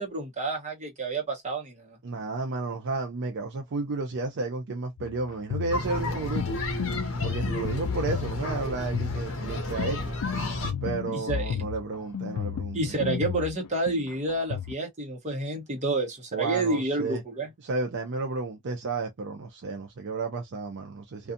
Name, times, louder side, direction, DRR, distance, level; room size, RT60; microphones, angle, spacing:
voice 1, 0.0-2.0 11.1-11.7 12.7-17.5, right 2 dB, 30° right, 0.9 m, -29 dB
voice 2, 2.0-6.6 7.2-10.1 10.8-13.0 16.3-17.2 17.6-21.3, right 3 dB, 55° right, 0.5 m, -32 dB
sound 1, 5.0-14.7, left 8 dB, 85° left, 0.3 m, -33 dB
sound 2, 5.7-10.7, left 2 dB, 60° left, 0.8 m, -32 dB
2.6 x 2.3 x 2.5 m
head